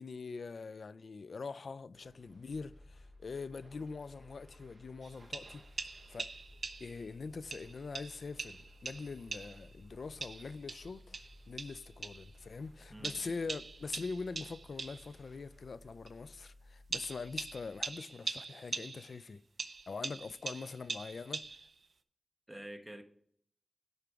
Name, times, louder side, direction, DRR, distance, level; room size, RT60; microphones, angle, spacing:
voice 1, 0.0-5.6 6.1-6.3 6.8-19.4 19.9-21.6, left 4 dB, 90° left, 0.3 m, -43 dB
sound 1, 1.9-16.1, right 1 dB, 60° right, 4.2 m, -64 dB
sound 2, 2.5-18.3, left 1 dB, 15° left, 2.8 m, -58 dB
sound 3, 5.0-7.1 7.5-9.7 10.2-12.3 13.0-15.1 16.1-16.2 16.9-19.2 19.6-21.8, right 4 dB, 80° right, 0.5 m, -43 dB
voice 2, 12.9-13.4 22.5-23.0, right 1 dB, 15° right, 1.1 m, -48 dB
11.0 x 4.6 x 4.9 m
wide cardioid pair, 70°, 0 cm